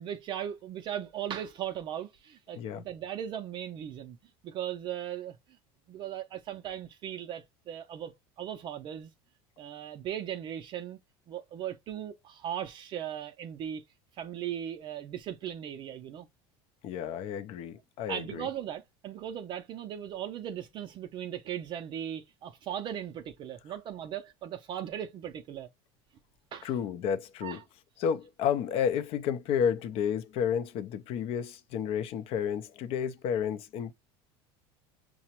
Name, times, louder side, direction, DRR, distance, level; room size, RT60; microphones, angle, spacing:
voice 1, 0.0-4.2 4.4-5.4 5.9-8.1 8.4-9.1 9.6-11.0 11.3-13.8 14.2-16.3 18.1-25.7 26.5-26.7 27.4-27.6, right 10 dB, 40° right, 0.4 m, -38 dB
voice 2, 16.8-18.5 26.6-27.6 28.0-33.9, left 8 dB, 55° left, 0.5 m, -31 dB
5.7 x 2.0 x 2.9 m
supercardioid pair, 125°, 12 cm